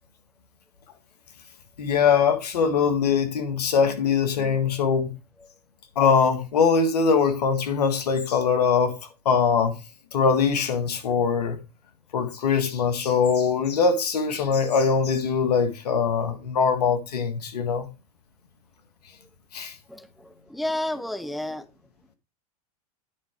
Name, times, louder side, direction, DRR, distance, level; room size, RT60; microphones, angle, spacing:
voice 1, 1.8-5.1 6.0-8.9 9.3-9.8 10.1-11.6 12.1-17.9 19.5-19.7, left 6 dB, 80° left, 1.7 m, -22 dB
voice 2, 20.5-21.6, left 1 dB, ahead, 0.5 m, -30 dB
9.9 x 4.7 x 4.5 m
hypercardioid pair, 105°, 20 cm